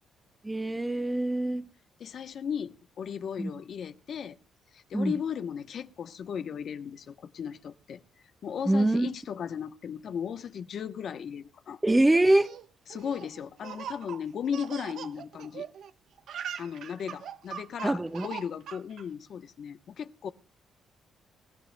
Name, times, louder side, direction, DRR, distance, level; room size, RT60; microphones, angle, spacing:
voice 1, 0.4-1.7 3.4-3.5 4.9-5.2 8.7-9.1 11.8-12.6 17.8-18.3, right 1 dB, 10° right, 1.1 m, -24 dB
voice 2, 2.0-4.4 4.7-8.0 8.4-11.8 12.9-15.7 16.6-20.3, left 7 dB, 60° left, 0.9 m, -36 dB
Laughter, 12.1-15.9 16.2-19.0, right 8 dB, 70° right, 1.0 m, -41 dB
26.5 x 13.0 x 2.2 m
cardioid pair, 90°, 0 cm